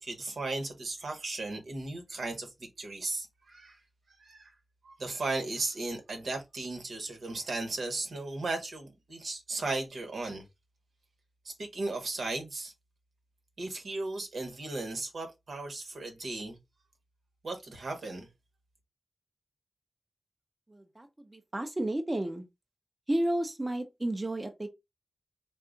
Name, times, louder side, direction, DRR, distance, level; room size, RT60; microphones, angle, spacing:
voice 1, 0.0-3.8 4.2-4.5 4.8-10.4 11.4-12.7 13.6-16.6 17.4-18.3, right 2 dB, 80° right, 1.1 m, -36 dB
voice 2, 20.7-22.4 23.1-24.7, right 1 dB, 25° right, 0.6 m, -32 dB
3.6 x 2.3 x 3.8 m
wide cardioid pair, 80°, 0 cm